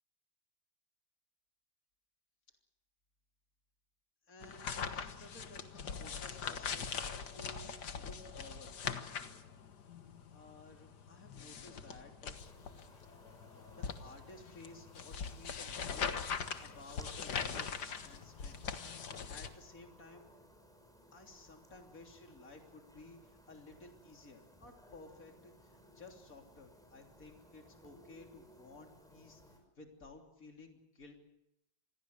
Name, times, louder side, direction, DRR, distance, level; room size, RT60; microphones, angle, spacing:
voice 1, 4.3-8.7 10.3-12.3 13.7-16.2 16.6-18.6 19.2-20.3 21.1-29.4 29.8-31.2, left 2 dB, 50° left, 2 dB, 3.7 m, -55 dB
sound 1, 4.4-19.5, left 6 dB, 75° left, 2.0 m, -42 dB
sound 2, 12.3-29.6, equal, ahead, 5.4 m, -61 dB
27.5 x 21.0 x 6.6 m, 0.83 s
omnidirectional pair, 1.8 m